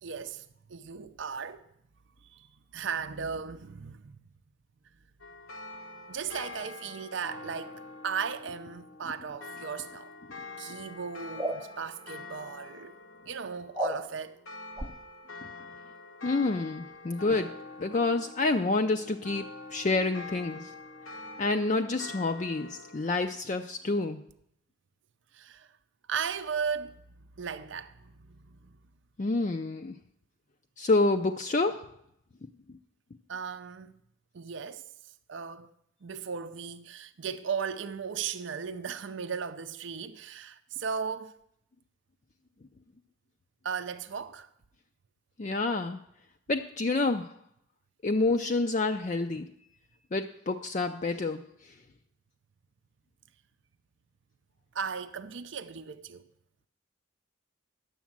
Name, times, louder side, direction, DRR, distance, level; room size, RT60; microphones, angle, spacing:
voice 1, 0.0-1.7 2.2-2.5 2.7-4.2 6.1-10.1 10.6-13.0 13.3-14.4 25.3-25.7 26.1-27.0 27.4-28.7 33.3-33.9 34.3-34.9 35.3-35.7 36.0-41.4 43.6-44.5 54.7-56.2, right 6 dB, 65° right, 0.5 m, -36 dB
sound 1, 5.2-23.2, left 3 dB, 80° left, 1.1 m, -46 dB
sound 2, 11.4-11.6 13.7-14.0 14.8-14.9, right 1 dB, 10° right, 0.7 m, -30 dB
voice 2, 16.2-17.5 17.8-20.7 21.4-24.2 29.2-29.9 30.8-31.8 45.4-46.0 46.5-47.3 48.0-49.5 50.1-51.4, left 3 dB, 35° left, 0.4 m, -28 dB
10.5 x 7.2 x 7.3 m
head